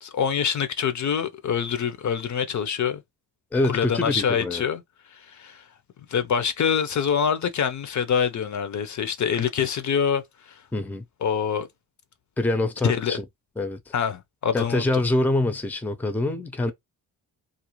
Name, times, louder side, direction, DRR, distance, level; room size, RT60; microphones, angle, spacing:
voice 1, 0.0-3.0 3.7-4.8 5.3-5.6 6.1-10.2 11.2-11.7 12.8-13.2 13.9-15.0, left 7 dB, 50° left, 0.5 m, -25 dB
voice 2, 3.5-4.6 10.7-11.0 12.4-13.2 13.6-13.8 14.5-16.7, left 2 dB, 5° left, 0.5 m, -25 dB
2.5 x 2.1 x 2.9 m
cardioid pair, 75°, 39 cm